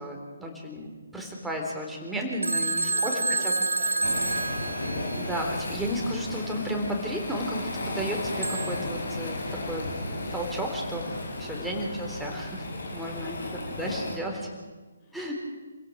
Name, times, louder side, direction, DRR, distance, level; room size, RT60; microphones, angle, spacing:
voice 1, 0.0-3.1 3.4-3.6 5.1-9.4 9.6-9.9 10.3-11.1 11.4-12.7 12.9-13.4 13.7-14.5 15.1-15.4, equal, ahead, -2 dB, 4.0 m, -33 dB
Telephone, 2.4-5.4 8.4-8.9, right 2 dB, 80° right, 1.2 m, -28 dB
voice 2, 2.8-5.2 11.6-11.8 13.0-13.8 15.0-15.3, left 2 dB, 35° left, -3 dB, 5.2 m, -44 dB
Waves surf, 4.0-14.2, left 1 dB, 70° left, 5.4 m, -34 dB
27.0 x 16.5 x 6.5 m, 1.3 s
figure-of-eight pair, 140°, 0 cm